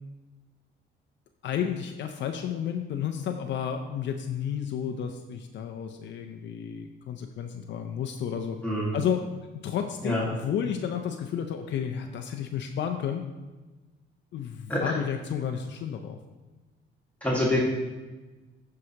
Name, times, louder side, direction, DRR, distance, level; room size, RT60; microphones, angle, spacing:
voice 1, 1.4-8.6 8.9-9.3 9.5-13.2 14.3-16.2, left 8 dB, 65° left, 5 dB, 0.6 m, -32 dB
voice 2, 8.6-9.0 10.0-10.2 14.7-14.8 17.2-17.6, left 1 dB, 5° left, -6 dB, 1.7 m, -25 dB
14.0 x 4.8 x 2.9 m, 1.2 s
cardioid pair, 100°, 20 cm